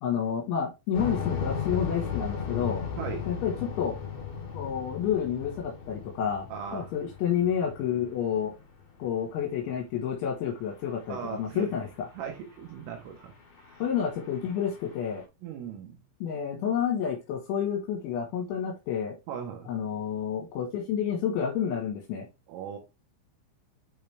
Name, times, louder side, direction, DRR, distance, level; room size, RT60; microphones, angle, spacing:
voice 1, 0.0-2.8 3.3-4.0 4.5-6.5 6.7-8.5 9.0-12.1 13.8-15.2 16.2-19.2 19.7-22.3, left 8 dB, 75° left, 3.6 m, -29 dB
sound 1, 0.9-8.7 9.0-9.1 9.6-9.8 11.2-11.3 11.6-11.7 11.9-12.0 12.3-12.4 12.8-13.1 13.6-15.2, left 6 dB, 45° left, 3.1 m, -36 dB
voice 2, 3.0-3.3 6.5-6.9 11.1-11.7 12.1-13.3 13.7-13.8 15.4-16.0 19.3-19.7 22.5-22.8, right 7 dB, 75° right, 3.6 m, -38 dB
9.0 x 5.0 x 3.3 m
omnidirectional pair, 6.0 m